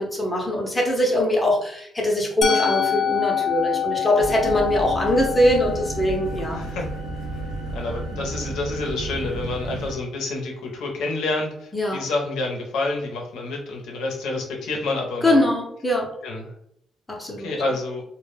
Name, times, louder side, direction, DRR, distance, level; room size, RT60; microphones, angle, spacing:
voice 1, 0.0-6.6 11.7-12.1 15.2-16.1 17.1-17.6, left 1 dB, 15° left, 0 dB, 0.7 m, -22 dB
Musical instrument, 2.4-8.3, left 8 dB, 50° left, 0.4 m, -27 dB
sound 1, 4.2-9.9, right 2 dB, 90° right, 0.5 m, -32 dB
voice 2, 6.5-6.9 7.7-15.4 16.2-16.5 17.4-18.0, left 2 dB, 85° left, 1 dB, 0.6 m, -28 dB
2.2 x 2.0 x 3.2 m, 0.71 s
cardioid pair, 90°, 0 cm